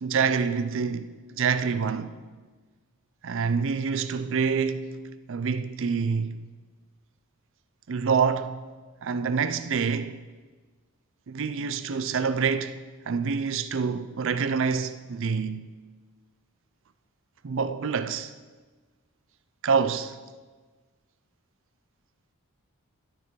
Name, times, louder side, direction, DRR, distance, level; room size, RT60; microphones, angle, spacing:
voice 1, 0.0-1.1 1.3-2.2 3.2-5.0 5.3-6.4 7.9-8.6 9.0-10.2 11.3-15.7 17.4-18.3 19.6-20.2, right 5 dB, 60° right, 0.5 m, -27 dB
13.0 x 7.5 x 4.7 m
head